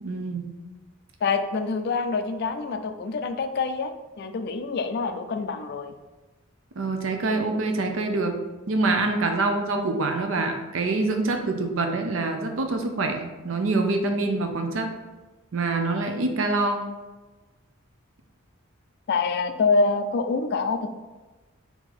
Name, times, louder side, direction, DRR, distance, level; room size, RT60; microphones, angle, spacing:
voice 1, 0.0-0.5 6.8-8.3 8.7-14.9 15.5-16.9, right 3 dB, 70° right, 5 dB, 0.6 m, -25 dB
voice 2, 1.2-5.9 19.1-20.9, left 4 dB, 50° left, 8 dB, 0.3 m, -26 dB
4.5 x 2.7 x 4.1 m, 1.2 s
head